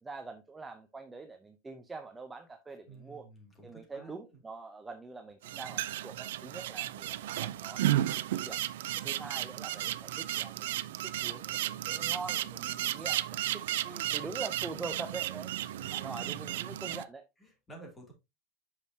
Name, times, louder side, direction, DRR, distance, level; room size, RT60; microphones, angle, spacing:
voice 1, 0.0-3.3 3.6-8.6 9.0-17.2, right 3 dB, 10° right, 0.6 m, -44 dB
voice 2, 2.9-4.4 15.8-16.5 17.4-18.1, right 2 dB, 10° left, 2.6 m, -52 dB
sound 1, 5.4-17.0, right 13 dB, 85° right, 0.5 m, -34 dB
8.7 x 6.3 x 2.8 m
supercardioid pair, 170°, 0 cm